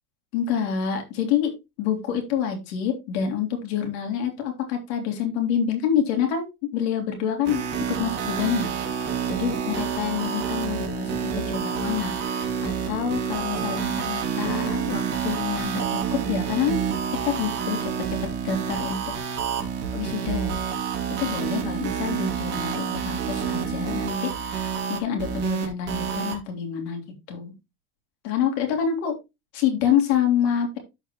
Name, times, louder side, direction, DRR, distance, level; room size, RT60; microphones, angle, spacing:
voice 1, 0.3-7.6 7.9-16.8 17.1-18.2 18.4-19.0 19.9-20.5 21.2-27.0 27.3-27.5 28.2-29.2 29.5-30.8, left 8 dB, 75° left, 3 dB, 3.5 m, -27 dB
sound 1, 7.4-26.4, right 7 dB, 30° right, 2.5 m, -28 dB
13.5 x 5.0 x 3.0 m, 0.24 s
cardioid pair, 165°, 33 cm